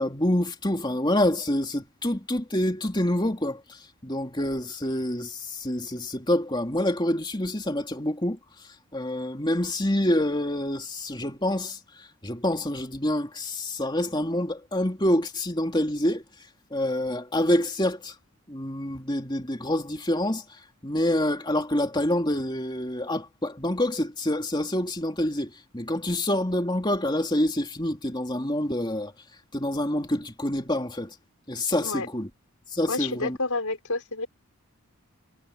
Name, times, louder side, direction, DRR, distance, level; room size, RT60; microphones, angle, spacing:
voice 1, 0.0-16.2 16.7-18.2 18.5-29.1 29.5-31.2 31.5-32.3 32.7-33.4, left 1 dB, 20° left, 3.1 m, -27 dB
voice 2, 32.9-34.3, left 3 dB, 80° left, 5.1 m, -29 dB
head